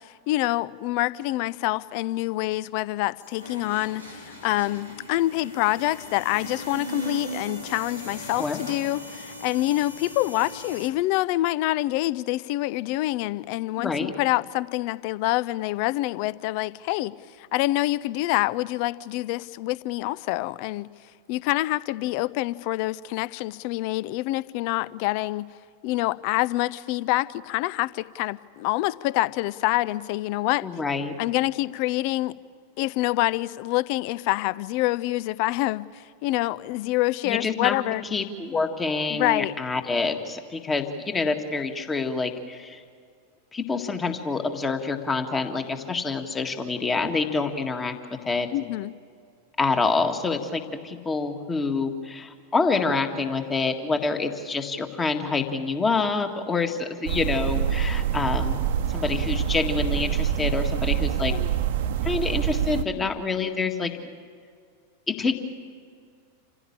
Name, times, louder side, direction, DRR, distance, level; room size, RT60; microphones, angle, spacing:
voice 1, 0.3-20.9 21.3-25.5 25.8-30.7 31.2-32.3 32.8-38.0 39.1-39.5 48.5-48.9 61.3-61.5, left 17 dB, 45° left, 20 dB, 0.5 m, -26 dB
sound 1, 3.2-10.9, equal, 90° left, 3.1 m, -39 dB
voice 2, 13.8-14.1 30.6-31.1 37.2-37.8 38.1-42.8 43.5-47.9 48.2-48.5 49.6-58.6 58.9-61.3 62.0-63.9 65.1-65.4, left 4 dB, 15° left, 6 dB, 1.8 m, -27 dB
sound 2, 57.1-62.8, right 9 dB, 55° right, 1.0 m, -26 dB
27.5 x 16.0 x 8.7 m, 2.1 s
figure-of-eight pair, 90°, 0 cm